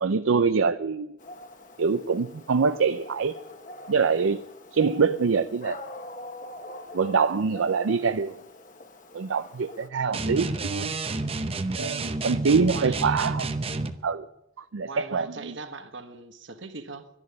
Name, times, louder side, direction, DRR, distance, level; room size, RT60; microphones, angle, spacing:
voice 1, 0.0-1.2 1.8-3.4 3.9-4.4 4.7-5.8 6.9-8.4 9.1-11.0 11.8-13.5 14.0-14.3 14.6-15.5, right 5 dB, 80° right, 0.5 m, -24 dB
Dog, 1.2-9.9, left 1 dB, 40° left, 1.3 m, -44 dB
voice 2, 10.0-10.5 12.7-13.2 14.8-17.1, right 4 dB, 65° right, 1.4 m, -40 dB
sound 1, 10.1-14.0, right 3 dB, 30° right, 0.8 m, -30 dB
12.5 x 11.0 x 9.7 m
head